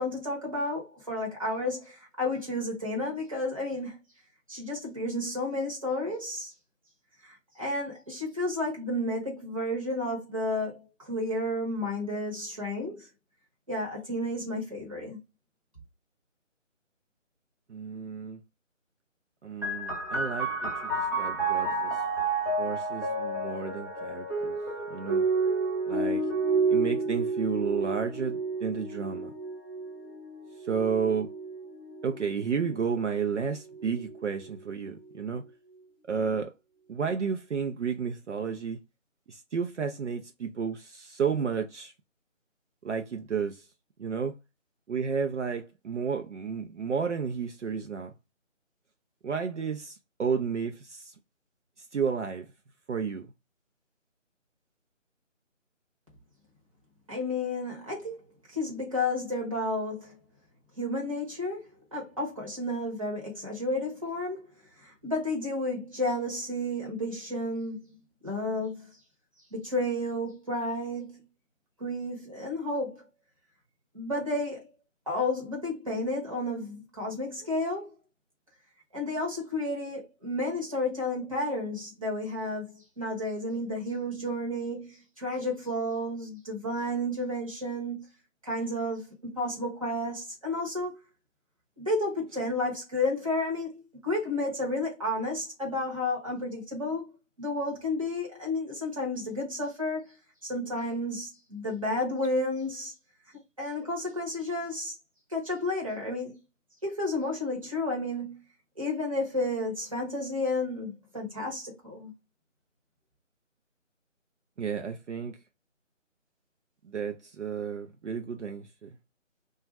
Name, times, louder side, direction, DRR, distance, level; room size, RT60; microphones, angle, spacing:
voice 1, 0.0-4.0 4.5-6.5 7.2-13.1 13.7-15.2 57.1-58.2 58.5-60.2 60.8-61.6 61.9-64.5 64.8-67.9 68.2-68.9 69.5-71.2 71.8-73.0 73.9-74.7 75.1-77.9 78.9-88.0 88.4-91.0 91.8-100.1 100.4-102.9 103.6-104.9 105.3-106.3 106.8-108.4 108.8-112.1, left 1 dB, 25° right, 0.9 m, -32 dB
voice 2, 17.7-18.4 19.4-22.0 22.6-24.6 24.9-25.2 25.9-26.3 26.7-29.3 30.6-31.3 32.0-35.4 36.1-36.5 36.9-38.8 39.3-41.9 42.8-43.7 44.0-44.3 44.9-48.1 49.2-51.1 51.8-52.5 52.9-53.3 114.6-115.4 116.8-118.9, right 6 dB, 65° right, 0.5 m, -32 dB
sound 1, 19.6-32.8 33.7-34.5, right 3 dB, 15° left, 1.0 m, -30 dB
2.5 x 2.3 x 3.0 m
figure-of-eight pair, 170°, 39 cm